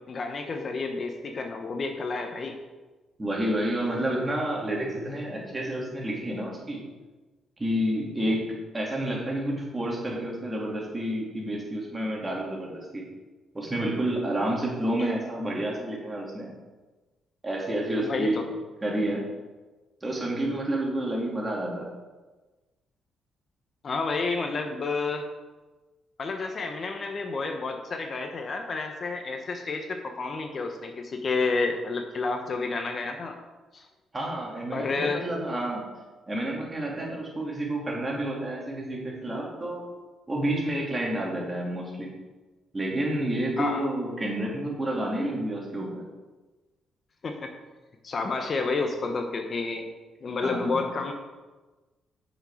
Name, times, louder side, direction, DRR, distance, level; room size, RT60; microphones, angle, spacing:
voice 1, 0.1-2.6 18.0-18.5 23.8-25.3 26.2-33.4 33.7-33.9 34.7-35.3 43.6-43.8 47.2-47.5 48.0-49.9 50.2-51.1, left 3 dB, 45° left, 4 dB, 1.0 m, -30 dB
voice 2, 3.2-6.8 7.6-8.4 8.7-13.0 13.5-16.5 17.4-18.4 18.8-19.2 20.0-21.9 34.1-35.8 36.3-39.8 40.3-42.1 42.7-46.0 50.4-50.9, right 1 dB, 20° right, -3 dB, 2.8 m, -29 dB
8.8 x 6.3 x 5.0 m, 1.2 s
cardioid pair, 90°, 0 cm